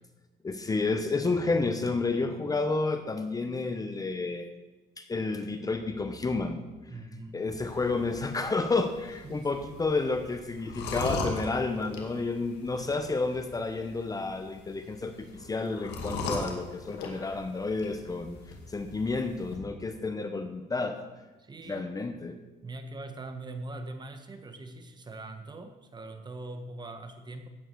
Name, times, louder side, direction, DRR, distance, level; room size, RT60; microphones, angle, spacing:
voice 1, 0.4-4.5 5.0-6.9 7.3-15.1 15.4-18.4 18.7-21.0 21.7-22.4, left 3 dB, 20° left, 8 dB, 1.0 m, -30 dB
voice 2, 6.9-7.4 9.2-9.5 21.4-21.9 22.6-27.5, right 2 dB, 25° right, 7 dB, 1.4 m, -42 dB
sound 1, 7.5-19.6, left 3 dB, 85° left, 2.2 m, -40 dB
15.0 x 9.1 x 4.7 m, 1.1 s
cardioid pair, 110°, 17 cm